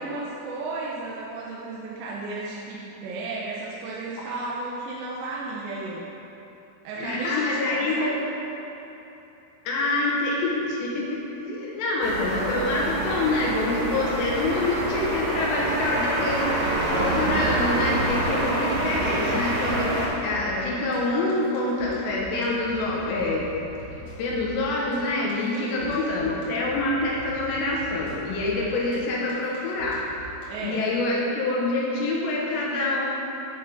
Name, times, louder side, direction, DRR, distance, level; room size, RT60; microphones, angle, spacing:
voice 1, 0.0-6.2 6.8-8.2 25.5-26.3 30.5-31.0, right 3 dB, 90° right, -5 dB, 3.0 m, -34 dB
voice 2, 7.0-8.2 9.6-16.6 16.9-23.5 24.2-30.0 30.6-33.1, left 2 dB, 90° left, -4 dB, 3.3 m, -26 dB
sound 1, 12.0-20.1, right 1 dB, 70° right, 1.7 m, -26 dB
sound 2, 18.9-30.4, right 1 dB, 55° left, 1.3 m, -43 dB
10.5 x 7.4 x 3.6 m, 3.0 s
omnidirectional pair, 4.8 m